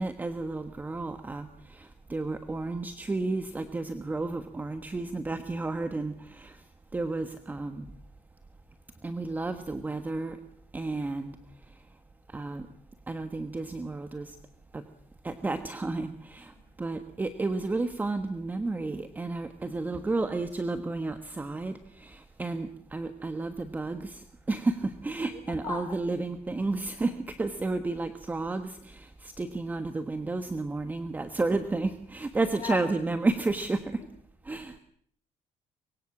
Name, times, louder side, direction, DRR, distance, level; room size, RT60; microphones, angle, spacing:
voice 1, 0.0-6.6 6.9-7.9 9.0-10.4 10.7-11.8 12.3-12.7 13.1-14.4 14.7-14.8 15.2-34.0 34.4-34.8, right 3 dB, 15° right, 9 dB, 1.3 m, -32 dB
voice 2, 25.3-26.0 32.6-32.8, left 7 dB, 40° left, 5 dB, 5.6 m, -37 dB
24.5 x 23.0 x 7.3 m, 0.63 s
cardioid pair, 155°, 12 cm